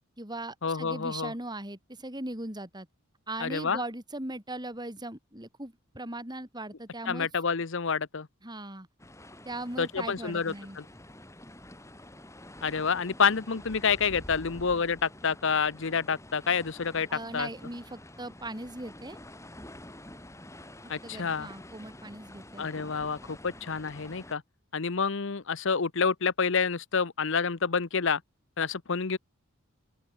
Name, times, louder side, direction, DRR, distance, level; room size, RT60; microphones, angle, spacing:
voice 1, 0.0-2.9 3.3-7.3 8.4-8.9 9.4-10.8 17.1-19.2 21.0-22.7, right 1 dB, 20° right, 5.1 m, -39 dB
voice 2, 0.6-1.3 3.4-3.8 7.1-8.3 9.8-10.8 12.6-17.1 17.3-17.5 20.9-21.5 22.6-24.4 24.7-28.2 28.6-29.2, left 5 dB, 60° left, 0.9 m, -28 dB
sound 1, 9.0-24.4, left 1 dB, 15° left, 6.2 m, -48 dB
open air
head